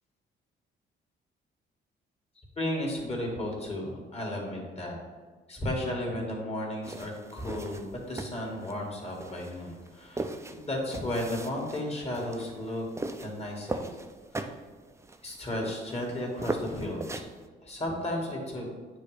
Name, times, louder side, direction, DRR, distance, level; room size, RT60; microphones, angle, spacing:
voice 1, 2.6-5.0 5.5-12.9 13.2-13.9 14.3-14.5 15.2-17.2 17.6-18.7, left 1 dB, 30° left, -1 dB, 2.1 m, -34 dB
sound 1, 6.8-17.4, right 2 dB, 15° right, 0.5 m, -39 dB
9.3 x 3.1 x 5.0 m, 1.4 s
cardioid pair, 85°, 20 cm